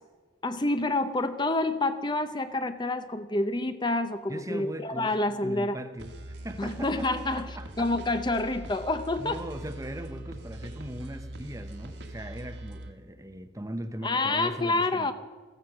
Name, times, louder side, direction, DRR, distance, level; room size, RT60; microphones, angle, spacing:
voice 1, 0.4-5.8 6.6-9.4 14.0-15.1, left 2 dB, 25° left, 10 dB, 0.7 m, -28 dB
voice 2, 4.3-6.1 6.4-7.9 9.2-15.1, right 1 dB, 15° right, 10 dB, 0.9 m, -39 dB
sound 1, 6.0-12.9, right 1 dB, 60° right, 1.7 m, -42 dB
15.0 x 14.5 x 6.1 m, 1.4 s
head